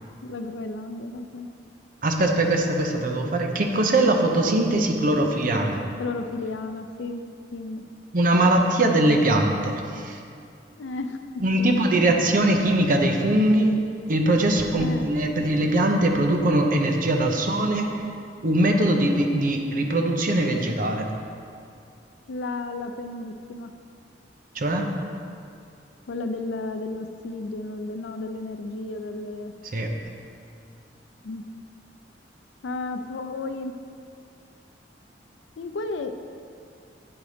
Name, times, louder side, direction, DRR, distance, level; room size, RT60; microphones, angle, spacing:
voice 1, 0.2-1.5 6.0-7.2 7.5-7.8 10.8-11.2 11.6-11.7 14.8-15.1 22.3-23.7 26.1-29.5 31.2-31.4 32.6-33.7 35.6-36.1, left 2 dB, 80° left, 8 dB, 0.5 m, -33 dB
voice 2, 2.0-5.8 8.1-10.2 11.4-13.8 14.1-17.9 18.4-21.1 24.5-24.9 29.7-29.9, right 1 dB, 50° right, 3 dB, 0.7 m, -21 dB
8.8 x 4.0 x 5.0 m, 2.4 s
head